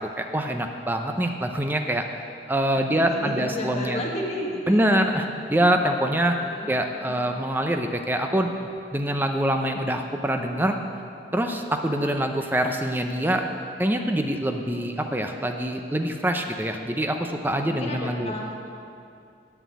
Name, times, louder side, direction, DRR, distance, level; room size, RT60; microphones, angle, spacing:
voice 1, 0.0-2.0 2.5-4.0 4.7-6.4 6.7-8.5 8.9-10.8 11.3-13.4 13.8-18.4, right 1 dB, 10° right, 5 dB, 0.6 m, -25 dB
voice 2, 2.7-5.1 6.4-6.7 7.1-7.3 17.7-18.4, left 1 dB, 35° left, -2 dB, 1.5 m, -33 dB
8.1 x 7.7 x 8.3 m, 2.5 s
head